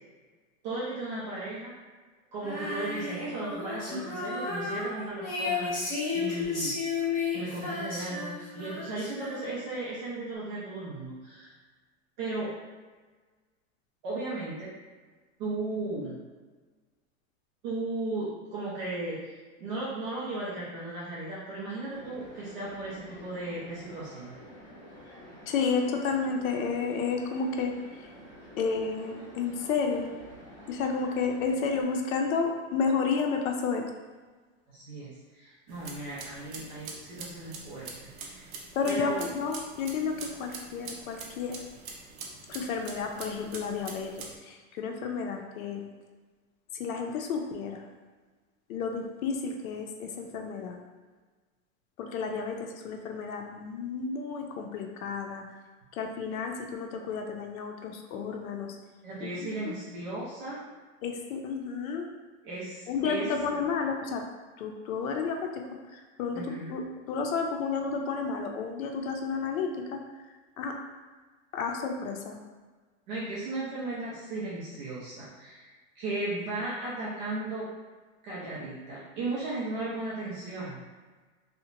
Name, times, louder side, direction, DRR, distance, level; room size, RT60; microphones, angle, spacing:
voice 1, 0.6-1.7 2.3-5.7 6.1-6.8 7.3-11.5 12.2-12.6 14.0-14.7 15.4-16.2 17.6-19.2 19.6-24.4 34.7-38.5 38.8-39.3 59.0-60.6 62.4-63.3 66.3-66.7 73.1-75.7 76.0-77.7 78.2-80.8, right 2 dB, 35° right, -8 dB, 0.5 m, -36 dB
Female singing, 2.4-9.8, left 4 dB, 20° left, 0.6 m, -33 dB
sound 1, 21.9-31.8, equal, 50° left, 1.0 m, -49 dB
voice 2, 25.5-28.1 28.6-30.1 30.7-33.8 38.8-41.6 42.5-45.8 46.8-47.9 48.7-50.8 52.0-55.4 55.9-58.8 59.2-59.3 59.7-59.8 61.0-62.1 62.9-64.2 64.6-65.6 65.9-70.0 70.6-70.8 71.5-72.4, left 5 dB, 90° left, 3 dB, 0.5 m, -31 dB
sound 2, 35.7-44.4, right 4 dB, 75° right, 0.7 m, -44 dB
2.8 x 2.1 x 2.5 m, 1.4 s
supercardioid pair, 160°, 41 cm